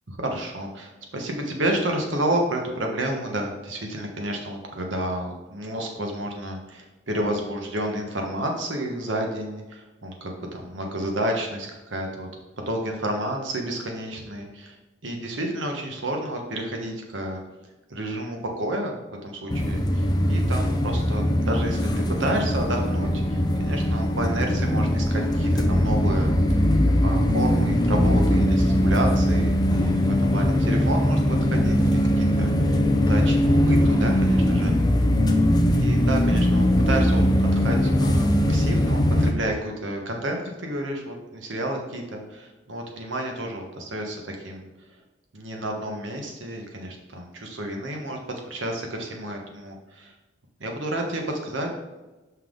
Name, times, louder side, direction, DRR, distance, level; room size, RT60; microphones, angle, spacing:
voice 1, 0.1-12.3 12.7-14.7 15.0-17.4 17.9-26.3 27.0-34.7 35.8-44.7 45.3-48.2 48.5-50.1 50.6-51.7, right 1 dB, 85° right, 2 dB, 1.2 m, -30 dB
sound 1, 19.5-39.3, equal, 20° left, 0.5 m, -21 dB
5.8 x 5.6 x 3.8 m, 1.1 s
head